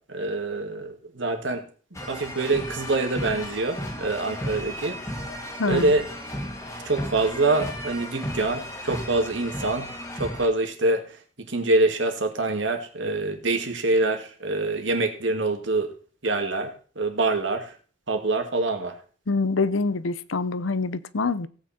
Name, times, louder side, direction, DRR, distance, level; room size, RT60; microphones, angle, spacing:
voice 1, 0.1-1.6 2.0-5.0 5.7-6.0 6.8-9.9 10.2-11.2 11.5-15.9 16.2-17.7 18.1-18.9, right 2 dB, 70° right, 2.2 m, -25 dB
sound 1, 1.9-10.5, equal, 15° left, 1.8 m, -34 dB
voice 2, 5.6-5.9 19.3-21.5, left 3 dB, 85° left, 0.7 m, -25 dB
16.5 x 8.8 x 4.4 m
head